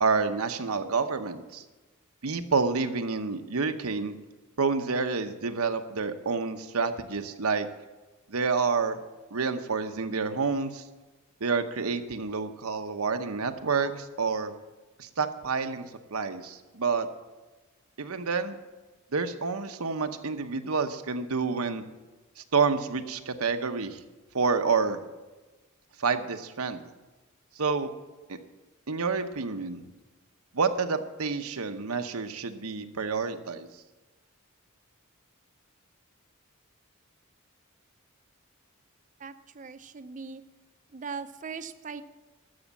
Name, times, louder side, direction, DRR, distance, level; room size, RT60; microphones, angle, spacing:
voice 1, 0.0-1.6 2.2-4.2 4.6-7.7 8.3-9.0 9.3-10.8 11.4-14.5 15.0-17.1 18.0-18.6 19.1-21.8 22.4-24.0 24.3-25.0 26.0-26.8 27.6-27.9 28.3-28.4 28.9-29.9 30.5-33.7, right 4 dB, 90° right, 8 dB, 0.9 m, -28 dB
voice 2, 39.2-40.4 40.9-42.0, right 5 dB, 35° right, 11 dB, 0.6 m, -39 dB
13.0 x 7.3 x 7.2 m, 1.2 s
head